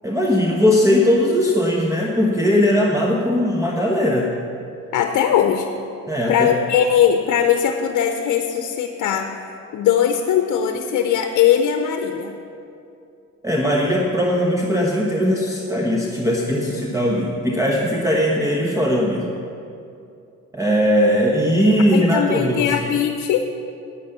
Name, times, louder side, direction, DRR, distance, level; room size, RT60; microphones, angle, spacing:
voice 1, 0.0-4.3 6.1-6.5 13.4-19.3 20.5-22.8, equal, 10° right, -2 dB, 1.1 m, -19 dB
voice 2, 4.9-5.7 6.3-9.3 9.7-12.4 21.9-23.5, left 9 dB, 75° left, 6 dB, 0.8 m, -19 dB
9.5 x 9.2 x 6.7 m, 2.6 s
cardioid pair, 90°, 30 cm